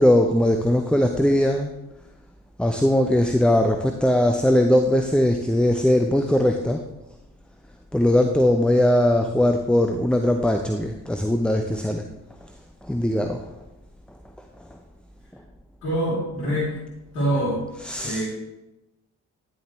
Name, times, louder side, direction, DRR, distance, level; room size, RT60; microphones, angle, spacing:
voice 1, 0.0-1.7 2.6-6.8 7.9-12.0 12.8-13.5 14.7-14.8 17.7-18.2, left 1 dB, ahead, 5 dB, 0.7 m, -20 dB
voice 2, 15.8-16.8 17.1-17.6 17.9-18.3, right 1 dB, 85° left, -10 dB, 3.1 m, -25 dB
10.0 x 6.8 x 3.2 m, 0.97 s
hypercardioid pair, 40°, 44 cm